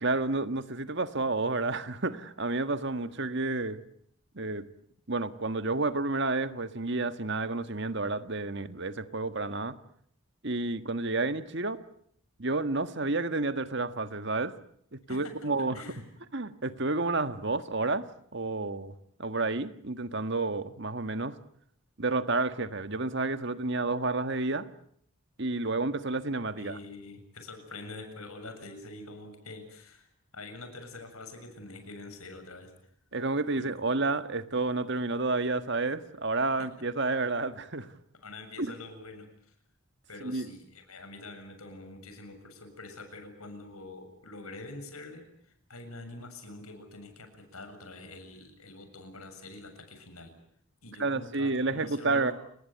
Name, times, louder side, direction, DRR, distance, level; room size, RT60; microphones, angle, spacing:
voice 1, 0.0-3.8 4.3-4.7 5.1-9.8 10.4-11.8 12.4-14.5 14.9-15.8 16.3-18.1 18.3-18.9 19.2-21.4 22.0-24.7 25.4-26.8 33.1-37.9 38.6-38.7 40.2-40.5 51.0-52.3, right 3 dB, 55° right, 11 dB, 1.6 m, -30 dB
voice 2, 15.1-16.0 26.6-30.1 30.3-32.7 33.6-33.7 36.6-36.7 38.2-39.5 40.1-50.3 50.8-52.3, left 2 dB, 90° left, 7 dB, 7.3 m, -45 dB
30.0 x 20.0 x 9.3 m, 0.66 s
head